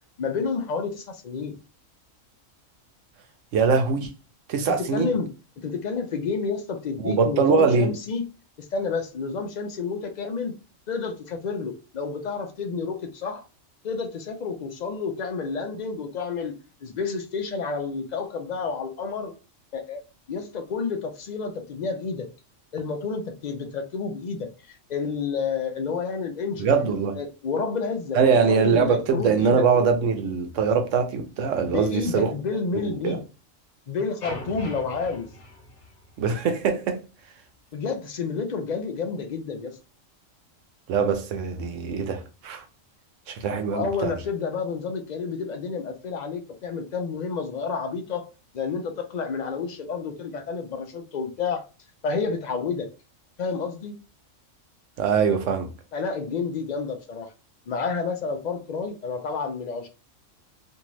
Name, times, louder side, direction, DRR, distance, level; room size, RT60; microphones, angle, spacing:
voice 1, 0.2-1.5 4.9-5.3 5.6-8.2 8.7-10.5 10.9-13.4 13.8-16.5 16.8-19.3 19.7-20.0 20.3-22.3 22.7-26.7 27.2-29.6 31.7-33.2 33.9-35.3 37.7-39.8 43.7-48.3 48.5-51.7 52.0-52.9 53.4-53.9 55.9-57.3 57.7-59.9, left 5 dB, 65° left, 0.4 m, -30 dB
voice 2, 3.5-4.1 4.5-5.1 7.0-7.9 26.6-27.2 28.1-32.3 32.9-33.2 36.2-37.0 40.9-42.6 43.3-44.1 55.0-55.7, right 5 dB, 70° right, 0.9 m, -22 dB
sound 1, 34.2-36.5, left 1 dB, 50° left, 0.8 m, -40 dB
2.7 x 2.5 x 3.0 m
omnidirectional pair, 1.4 m